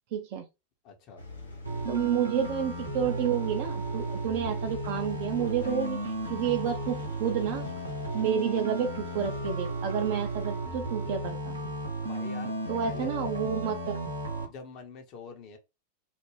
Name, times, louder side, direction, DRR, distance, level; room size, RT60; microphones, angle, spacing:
voice 1, 0.1-0.5 1.9-6.0 6.3-7.7 8.1-11.6 12.7-14.0, right 8 dB, 50° right, 0.5 m, -30 dB
voice 2, 0.8-1.2 5.4-5.8 6.5-6.6 12.0-12.5 12.8-13.1 14.5-15.6, left 5 dB, 40° left, 0.7 m, -45 dB
Engine, 1.2-10.6, left 2 dB, 70° left, 0.8 m, -46 dB
sound 1, 1.7-14.5, right 2 dB, 75° right, 0.8 m, -34 dB
2.4 x 2.1 x 3.2 m
figure-of-eight pair, 90°, 0 cm